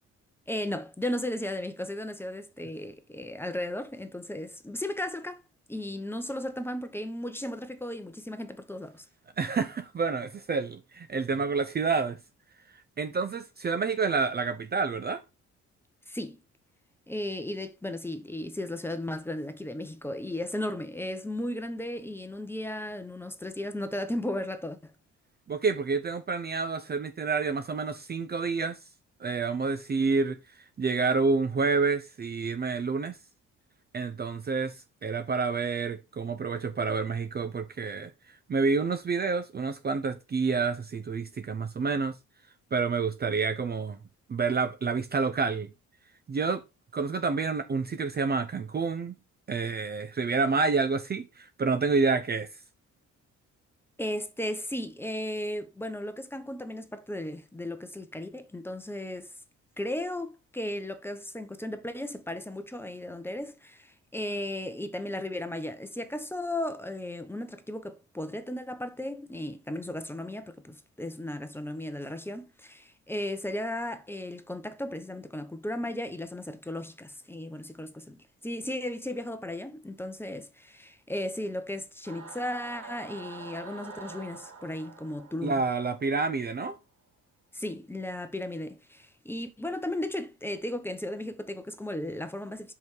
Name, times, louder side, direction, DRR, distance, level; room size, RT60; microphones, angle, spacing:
voice 1, 0.5-5.4 5.7-9.0 16.1-16.4 17.1-24.9 54.0-59.3 59.8-85.6 87.5-92.7, left 1 dB, 5° left, 1.0 m, -35 dB
voice 2, 9.4-12.2 13.0-15.2 25.5-28.8 29.2-30.4 30.8-33.2 33.9-38.1 38.5-42.1 42.7-44.0 44.3-45.7 46.3-46.6 46.9-49.2 49.5-52.5 85.4-86.8, right 4 dB, 30° right, 0.6 m, -28 dB
Singing / Musical instrument, 82.0-86.7, right 4 dB, 80° right, 3.0 m, -46 dB
5.3 x 4.9 x 4.5 m
cardioid pair, 90°, 30 cm